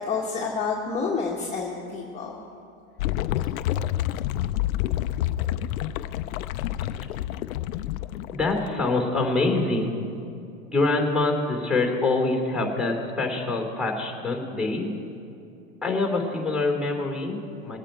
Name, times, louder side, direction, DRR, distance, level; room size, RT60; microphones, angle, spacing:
voice 1, 0.0-2.4, left 5 dB, 15° left, -4 dB, 1.6 m, -29 dB
sound 1, 3.0-8.7, left 13 dB, 90° left, 0.6 m, -28 dB
voice 2, 8.1-10.0 10.7-14.9 15.8-17.8, left 3 dB, ahead, 1 dB, 3.2 m, -25 dB
22.5 x 9.0 x 4.4 m, 2.6 s
supercardioid pair, 130°, 40 cm